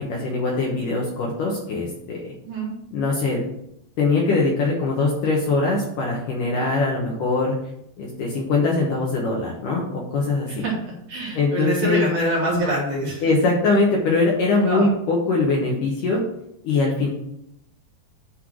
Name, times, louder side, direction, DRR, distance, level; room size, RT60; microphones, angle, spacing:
voice 1, 0.0-2.3 2.9-3.4 4.0-7.5 8.0-10.6 11.3-12.1 13.2-16.2 16.6-17.1, left 3 dB, 65° left, -2 dB, 2.3 m, -22 dB
voice 2, 10.5-13.2 14.6-14.9, right 1 dB, 50° right, -4 dB, 3.0 m, -25 dB
10.0 x 3.4 x 6.0 m, 0.78 s
omnidirectional pair, 4.8 m